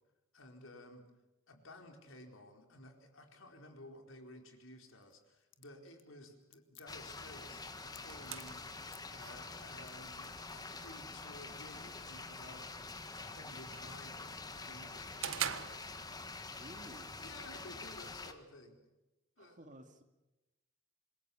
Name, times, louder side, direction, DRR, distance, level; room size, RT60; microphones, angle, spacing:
voice 1, 0.3-1.0 1.5-15.3 17.2-18.8 19.4-19.6, left 1 dB, 75° left, 4 dB, 4.5 m, -55 dB
sound 1, 4.8-8.6 8.9-9.1 9.5-10.5 10.8-10.9, left 14 dB, 60° left, 1.5 m, -61 dB
sound 2, 6.9-18.3, left 3 dB, 20° left, 1.6 m, -47 dB
sound 3, 7.5-16.5, right 9 dB, 75° right, 1.5 m, -47 dB
voice 2, 16.5-17.1 19.4-20.0, right 1 dB, 40° right, 7 dB, 2.3 m, -54 dB
27.0 x 21.5 x 7.1 m, 1.0 s
head